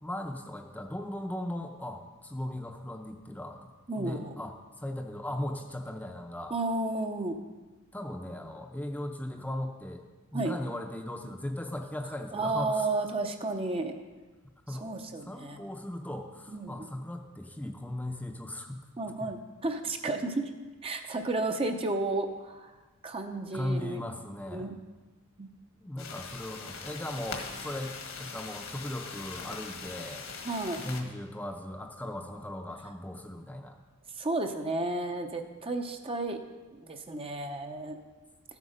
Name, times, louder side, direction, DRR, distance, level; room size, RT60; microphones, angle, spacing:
voice 1, 0.0-3.7 4.0-6.5 7.9-10.0 10.3-13.0 14.7-18.9 19.2-19.3 23.5-24.7 25.8-30.2 30.8-33.8, left 1 dB, 10° left, 3 dB, 0.7 m, -38 dB
voice 2, 3.9-4.3 6.5-7.4 10.3-10.5 12.3-13.9 14.7-15.6 16.5-16.9 19.0-20.5 20.8-22.7 23.0-24.0 24.5-24.7 25.4-25.5 30.4-30.8 34.2-36.4 36.7-38.0, right 2 dB, 25° right, 5 dB, 0.7 m, -32 dB
sound 1, 26.0-31.0, left 5 dB, 65° left, 1.6 m, -41 dB
13.0 x 8.2 x 5.1 m, 1.2 s
head